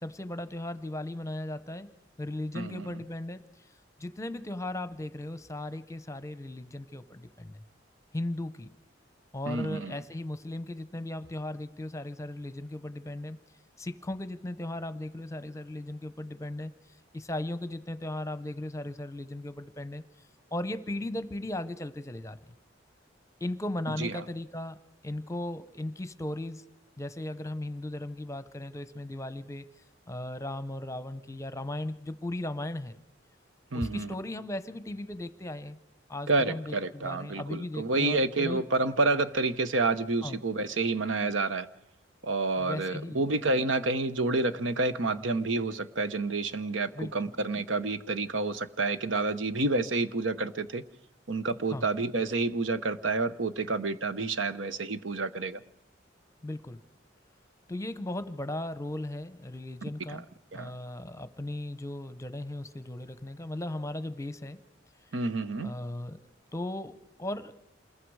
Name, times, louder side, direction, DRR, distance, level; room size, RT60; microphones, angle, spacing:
voice 1, 0.0-1.9 2.2-3.7 4.0-7.6 8.1-8.7 9.3-13.4 13.8-16.7 17.1-20.0 20.5-22.4 23.4-24.8 25.0-26.6 27.0-29.6 30.1-33.0 33.7-35.8 36.1-38.6 40.2-40.4 42.6-43.2 46.9-47.3 51.7-51.9 56.4-56.8 57.7-60.3 60.5-64.6 65.6-67.5, left 1 dB, 15° left, 0.8 m, -37 dB
voice 2, 2.5-2.9 9.5-10.0 24.0-24.2 33.7-34.1 36.3-41.7 42.2-50.8 51.3-55.6 60.1-60.2 60.5-60.7 65.1-65.7, right 3 dB, 90° right, 1.0 m, -29 dB
27.5 x 21.0 x 4.8 m
head